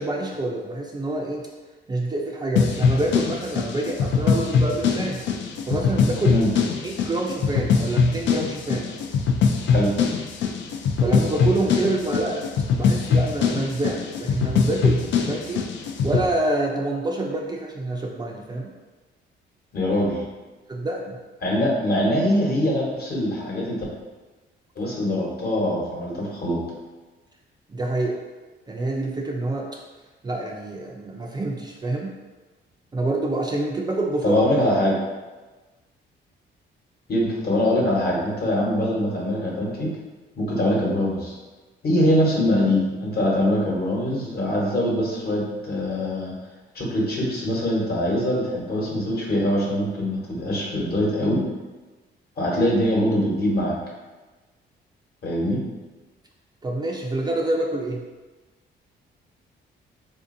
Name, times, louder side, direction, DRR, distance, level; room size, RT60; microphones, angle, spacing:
voice 1, 0.0-1.4 1.9-5.3 5.7-6.3 6.8-8.9 11.0-12.4 12.7-15.6 16.0-18.7 20.7-21.2 27.7-28.2 28.7-29.7 30.2-32.1 32.9-34.4 56.6-58.0, right 2 dB, 20° right, -1 dB, 0.4 m, -27 dB
sound 1, 2.6-16.3, left 5 dB, 65° left, 0.4 m, -22 dB
voice 2, 19.7-20.2 21.4-23.8 24.8-26.6 34.2-35.0 37.1-39.9 40.4-41.3 41.8-46.4 46.7-51.4 52.4-53.7 55.2-55.6, left 1 dB, 50° left, -4 dB, 1.1 m, -23 dB
3.4 x 2.6 x 2.6 m, 1.2 s
cardioid pair, 90°, 20 cm